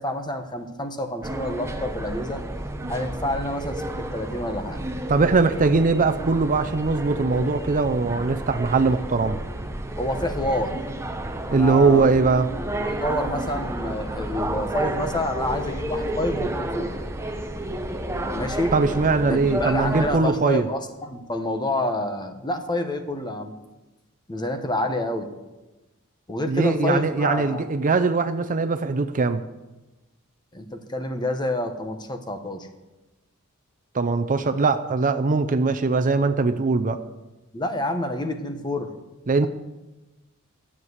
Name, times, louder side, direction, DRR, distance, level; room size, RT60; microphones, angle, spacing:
voice 1, 0.0-2.4 2.9-3.8 4.1-4.8 10.0-10.8 11.5-12.1 12.8-16.9 18.3-18.7 19.3-23.5 24.3-25.3 26.3-27.6 30.5-32.7 37.5-38.9, left 1 dB, 20° left, 7 dB, 1.1 m, -28 dB
sound 1, 1.2-20.1, right 1 dB, 10° right, 0.9 m, -31 dB
voice 2, 5.1-9.4 11.5-12.5 18.7-20.7 26.5-29.4 33.9-37.0 39.3-39.5, right 4 dB, 35° right, 10 dB, 0.6 m, -21 dB
12.5 x 7.4 x 8.0 m, 1.1 s
head